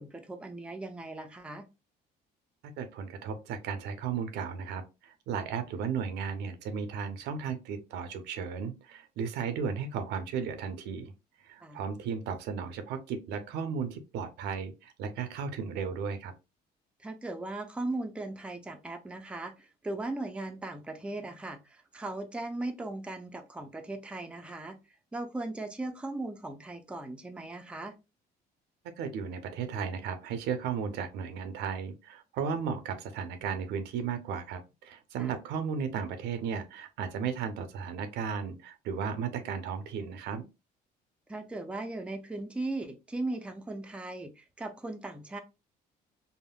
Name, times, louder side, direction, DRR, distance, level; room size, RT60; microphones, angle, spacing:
voice 1, 0.0-1.7 11.6-11.8 17.0-24.8 25.1-28.0 35.2-35.4 41.3-45.4, right 2 dB, 5° right, 0.4 m, -38 dB
voice 2, 2.8-11.1 11.4-16.3 29.0-40.4, right 6 dB, 80° right, 0.6 m, -35 dB
3.5 x 2.0 x 2.3 m
cardioid pair, 110°, 17 cm